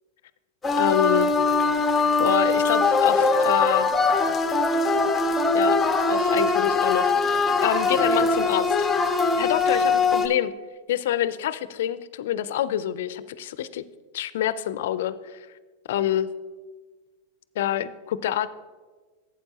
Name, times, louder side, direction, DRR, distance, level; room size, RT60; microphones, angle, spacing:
sound 1, 0.6-10.3, left 3 dB, 15° left, 0.7 m, -21 dB
voice 1, 0.8-1.3 2.2-3.9 5.5-5.8 6.1-8.8 9.4-10.5 10.9-13.8 14.1-15.5 15.9-16.3 17.6-18.5, left 11 dB, 75° left, 15 dB, 0.4 m, -26 dB
12.0 x 8.2 x 2.8 m, 1.3 s
hypercardioid pair, 110°, 0 cm